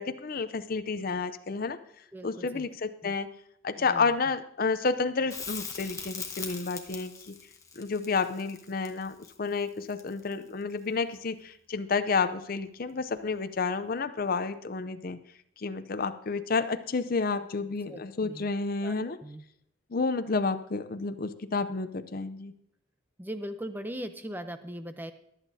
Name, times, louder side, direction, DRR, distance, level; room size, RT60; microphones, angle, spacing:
voice 1, 0.0-1.8 2.2-3.3 3.6-7.3 7.8-15.2 15.6-19.2 19.9-22.5, left 4 dB, 45° left, 11 dB, 0.6 m, -30 dB
voice 2, 2.1-2.6 3.0-3.1 3.8-4.1 17.9-18.5 18.8-18.9 19.2-19.4 23.2-25.1, equal, 10° right, 9 dB, 0.6 m, -39 dB
Crackle, 5.3-10.4 13.2-13.3, left 5 dB, 15° left, 1.0 m, -41 dB
22.5 x 8.2 x 2.7 m, 0.73 s
head